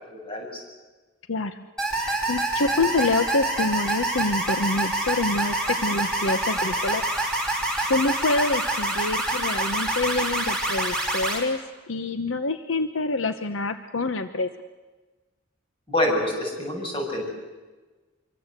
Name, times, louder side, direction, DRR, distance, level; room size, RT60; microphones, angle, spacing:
voice 1, 0.1-0.6 15.9-17.3, left 1 dB, 25° left, 0 dB, 7.9 m, -26 dB
voice 2, 1.3-1.6 2.0-7.0 7.8-11.6 11.9-14.5, left 3 dB, 70° left, 9 dB, 1.0 m, -26 dB
sound 1, 1.8-11.4, right 2 dB, 5° left, 5.9 m, -26 dB
25.5 x 24.5 x 8.2 m, 1.3 s
head